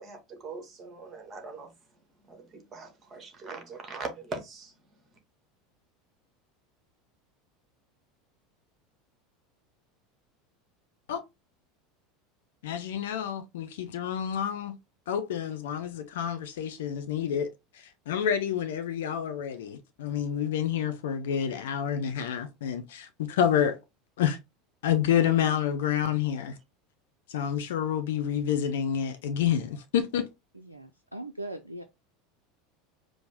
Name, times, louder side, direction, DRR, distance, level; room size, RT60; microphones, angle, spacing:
voice 1, 0.0-1.7 2.2-4.7, right 3 dB, 25° right, 1.2 m, -41 dB
voice 2, 12.6-14.8 15.1-23.8 24.2-24.4 24.8-26.6 27.3-30.3, left 9 dB, 65° left, 0.5 m, -28 dB
voice 3, 30.5-31.8, right 1 dB, 90° right, 0.3 m, -40 dB
4.9 x 2.0 x 3.4 m
figure-of-eight pair, 75°, 0 cm